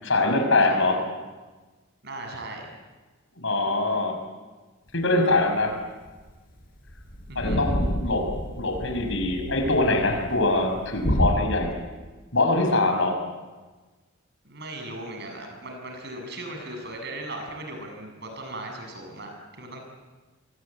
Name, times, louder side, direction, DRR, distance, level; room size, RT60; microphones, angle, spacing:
voice 1, 0.0-1.0 3.4-4.1 4.9-5.7 7.4-8.3 8.6-11.7 12.3-13.2, left 2 dB, 65° left, 5 dB, 6.0 m, -23 dB
voice 2, 2.0-2.7 7.3-7.6 14.4-19.3 19.6-19.8, right 1 dB, 55° right, 3 dB, 7.5 m, -38 dB
sound 1, 5.7-5.8 6.1-6.3 6.6-6.7 6.9-11.4, equal, 45° left, 4.5 m, -29 dB
28.5 x 22.5 x 8.7 m, 1.3 s
head